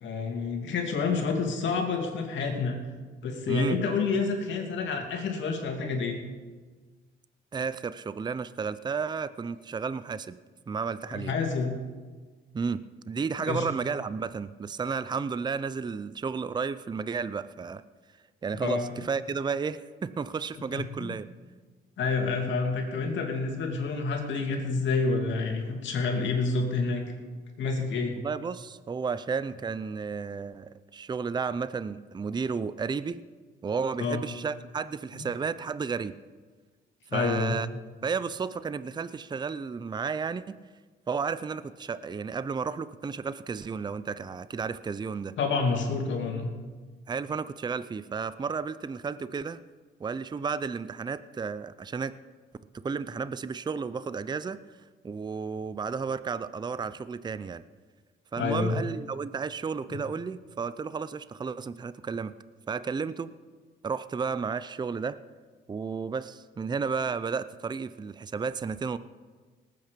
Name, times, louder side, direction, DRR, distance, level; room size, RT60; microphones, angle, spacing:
voice 1, 0.0-2.8 3.2-6.2 11.1-11.8 13.5-13.7 18.6-18.9 20.7-21.1 22.0-27.1 27.6-28.2 34.0-34.2 37.1-37.6 45.4-46.5 58.4-58.8, left 4 dB, 70° left, 2 dB, 2.6 m, -28 dB
voice 2, 3.5-3.8 7.5-10.4 10.7-11.3 12.5-17.8 18.4-21.3 28.2-33.2 33.6-36.1 37.1-37.7 38.0-40.6 41.1-45.4 47.1-49.6 50.0-52.2 52.8-54.6 55.0-57.6 58.3-62.3 62.7-63.3 63.8-65.2 65.7-69.0, right 5 dB, 20° right, 15 dB, 0.5 m, -32 dB
19.0 x 8.6 x 5.2 m, 1.4 s
cardioid pair, 90°, 20 cm